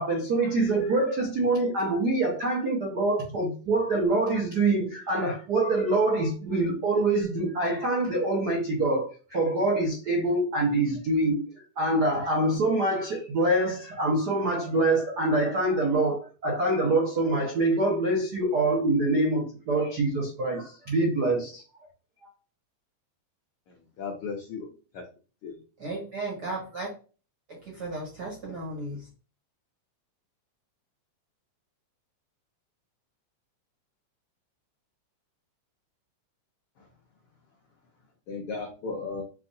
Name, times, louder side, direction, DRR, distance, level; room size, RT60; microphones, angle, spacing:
voice 1, 0.0-11.4 11.8-21.6 22.2-22.3, right 2 dB, 70° right, 0.9 m, -25 dB
voice 2, 24.0-24.7 24.9-25.0 25.4-25.6 38.3-39.2, left 4 dB, 80° left, 1.2 m, -35 dB
voice 3, 25.8-26.9 27.5-29.1, right 2 dB, 50° right, 1.4 m, -35 dB
6.6 x 2.5 x 2.6 m
omnidirectional pair, 3.4 m